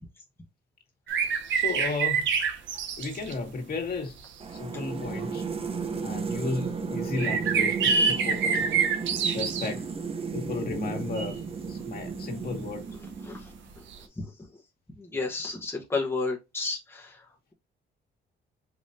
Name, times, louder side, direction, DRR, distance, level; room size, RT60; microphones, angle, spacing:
sound 1, 1.1-3.3 4.3-4.4 5.2-5.3 7.2-9.7 11.2-11.3 13.9-14.0, right 6 dB, 70° right, 1.0 m, -26 dB
voice 1, 1.5-2.3 3.0-4.2 4.6-5.4 6.0-8.8 9.3-9.9 10.3-11.4 11.7-12.9, left 3 dB, 50° left, 2.0 m, -34 dB
sound 2, 4.4-13.7, right 5 dB, 30° right, 0.8 m, -34 dB
voice 2, 13.2-13.8 14.2-14.6 14.9-17.3, left 3 dB, 10° left, 1.2 m, -33 dB
5.2 x 3.0 x 2.7 m
cardioid pair, 90°, 20 cm